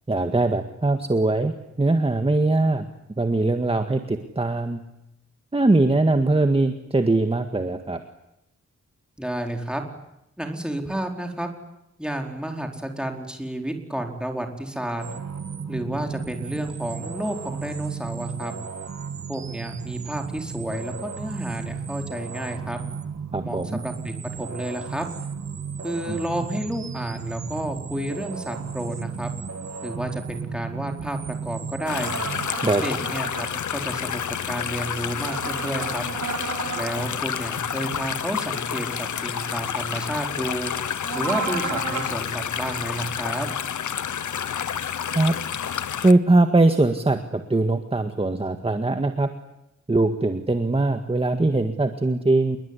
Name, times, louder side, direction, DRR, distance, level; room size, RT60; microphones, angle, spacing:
voice 1, 0.1-2.9 3.2-4.8 5.5-8.0 23.3-23.8 26.1-26.2 32.6-32.8 45.1-45.3 46.0-49.3 49.9-52.6, right 2 dB, 20° right, 7 dB, 1.8 m, -21 dB
voice 2, 9.2-9.8 10.4-11.5 12.0-15.0 15.7-18.5 19.3-22.8 23.4-25.1 25.8-29.3 29.8-32.1 32.8-36.0 36.7-40.7 41.1-43.5, right 1 dB, 5° right, 3 dB, 4.4 m, -31 dB
sound 1, 15.0-32.5, right 6 dB, 65° right, 1.7 m, -34 dB
sound 2, 31.9-46.1, left 8 dB, 85° left, 1.0 m, -29 dB
sound 3, 32.0-33.5 35.2-36.9 41.0-42.1, right 5 dB, 90° right, 5.9 m, -32 dB
27.5 x 22.0 x 9.9 m, 0.87 s
wide cardioid pair, 115°, 29 cm